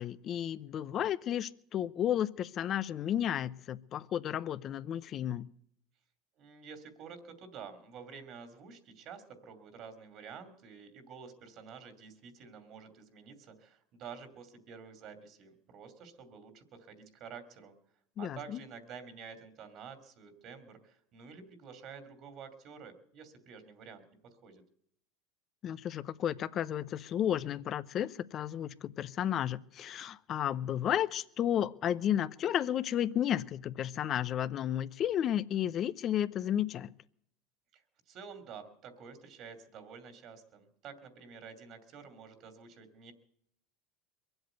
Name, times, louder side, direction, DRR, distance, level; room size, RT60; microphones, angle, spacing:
voice 1, 0.0-5.5 18.2-18.6 25.6-36.9, left 10 dB, 40° left, 16 dB, 0.6 m, -32 dB
voice 2, 6.4-17.7 18.2-24.0 24.4-24.6 37.7-37.8 38.1-43.1, right 6 dB, 50° right, 9 dB, 2.7 m, -49 dB
22.5 x 8.0 x 8.0 m, 0.69 s
supercardioid pair, 105°, 0 cm